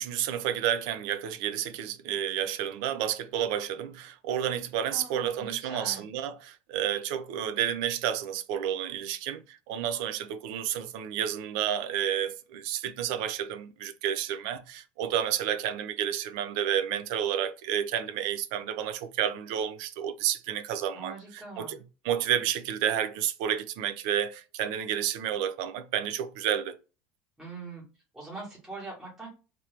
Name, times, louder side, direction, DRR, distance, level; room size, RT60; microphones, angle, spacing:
voice 1, 0.0-21.8 22.0-26.8, right 10 dB, 60° right, 0.5 m, -30 dB
voice 2, 4.9-6.1 20.9-21.8 27.4-27.8 28.1-29.3, right 3 dB, 5° right, 1.3 m, -42 dB
3.0 x 2.6 x 3.2 m
cardioid pair, 175°, 5 cm